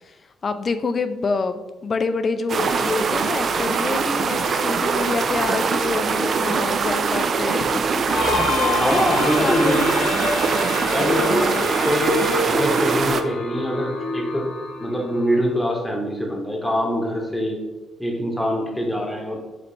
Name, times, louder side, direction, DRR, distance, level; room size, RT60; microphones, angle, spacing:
voice 1, 0.4-9.8 11.1-11.7, left 4 dB, 40° left, 10 dB, 0.4 m, -27 dB
sound 1, 2.5-13.2, right 5 dB, 50° right, 0.3 m, -22 dB
sound 2, 8.1-15.7, left 3 dB, 85° left, 0.6 m, -27 dB
voice 2, 8.8-10.0 10.9-11.5 11.8-12.2 12.4-14.5 14.8-17.6 18.0-19.4, equal, 5° left, 0 dB, 1.1 m, -24 dB
5.1 x 3.2 x 3.2 m, 1.2 s
cardioid pair, 90°, 0 cm